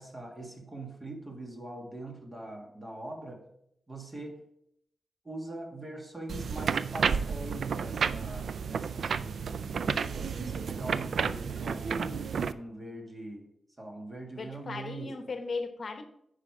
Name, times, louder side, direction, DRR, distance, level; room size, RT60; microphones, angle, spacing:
voice 1, 0.0-3.5 3.9-4.4 5.2-9.6 9.9-13.5 13.8-15.1, right 1 dB, 25° right, 1 dB, 1.9 m, -42 dB
sound 1, 6.3-12.5, right 6 dB, 80° right, 0.3 m, -31 dB
voice 2, 9.5-10.2 14.4-16.0, left 4 dB, 55° left, 7 dB, 0.9 m, -38 dB
9.8 x 5.0 x 4.8 m, 0.74 s
wide cardioid pair, 100°, 0 cm